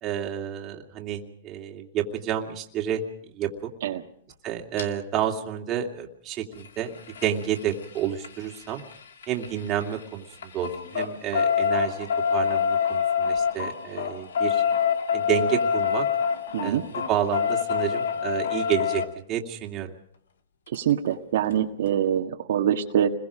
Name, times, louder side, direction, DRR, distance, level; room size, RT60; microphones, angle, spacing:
voice 1, 0.0-3.0 3.3-3.7 4.4-6.9 7.2-8.8 9.3-10.2 10.5-14.6 15.1-16.1 16.6-19.0 19.3-19.9, right 9 dB, 25° right, 2 dB, 2.5 m, -30 dB
sound 1, 4.8-4.9 6.5-10.0 10.3-19.1 20.7-20.8 21.1-21.2 21.5-21.6, left 7 dB, 90° left, 2.5 m, -26 dB
voice 2, 16.5-16.8 20.7-23.1, right 10 dB, 65° right, 3 dB, 1.7 m, -24 dB
30.0 x 21.5 x 5.0 m, 0.63 s
hypercardioid pair, 160°, 0 cm